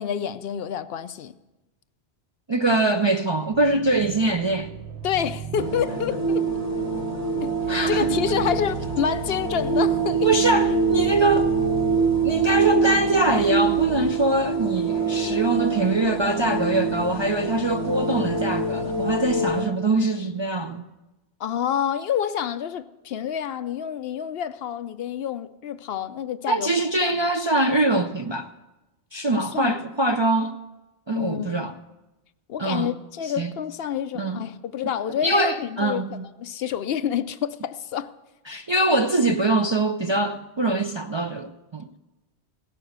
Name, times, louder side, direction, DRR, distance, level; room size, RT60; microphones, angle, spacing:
voice 1, 0.0-1.4 5.0-6.5 7.3-7.5 7.9-10.4 21.4-26.7 27.0-27.1 29.4-29.8 31.1-31.7 32.5-36.1 36.4-38.1, left 9 dB, 70° left, 0.8 m, -28 dB
voice 2, 2.5-4.7 7.7-8.1 10.2-11.5 12.2-20.9 26.5-28.5 29.1-30.6 31.1-31.7 32.6-32.9 33.4-33.5 34.1-34.4 35.2-36.2 38.5-41.9, right 2 dB, 40° right, 0.4 m, -23 dB
sound 1, 3.5-14.2, right 6 dB, 70° right, 1.1 m, -37 dB
sound 2, 5.6-19.6, right 4 dB, 35° left, 1.7 m, -25 dB
17.0 x 6.7 x 7.9 m
omnidirectional pair, 1.1 m